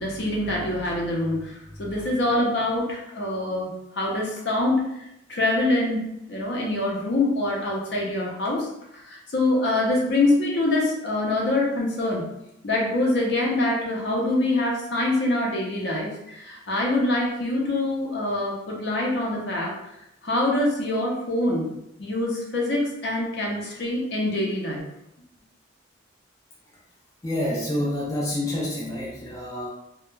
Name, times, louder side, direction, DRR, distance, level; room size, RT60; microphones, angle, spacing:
voice 1, 0.0-6.0 6.3-12.3 12.6-19.7 20.2-21.7 22.0-24.8, left 2 dB, 60° left, -2 dB, 0.6 m, -25 dB
voice 2, 27.2-29.7, left 1 dB, 15° left, -5 dB, 0.3 m, -28 dB
2.3 x 2.1 x 3.0 m, 0.83 s
head